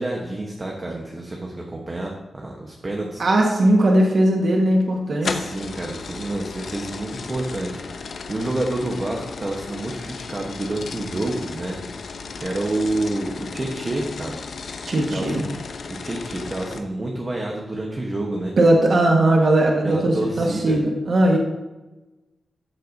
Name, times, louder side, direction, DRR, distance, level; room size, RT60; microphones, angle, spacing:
voice 1, 0.0-3.2 5.2-7.8 8.3-11.8 12.4-14.4 15.1-15.6 15.9-18.5 19.8-20.8, right 2 dB, 25° right, 0 dB, 1.1 m, -28 dB
voice 2, 3.2-5.3 14.9-15.4 18.6-21.4, right 1 dB, 45° right, 0 dB, 1.5 m, -18 dB
sound 1, 5.2-16.8, left 4 dB, 60° left, 0.8 m, -35 dB
13.0 x 7.6 x 2.7 m, 1.1 s
wide cardioid pair, 175°, 0 cm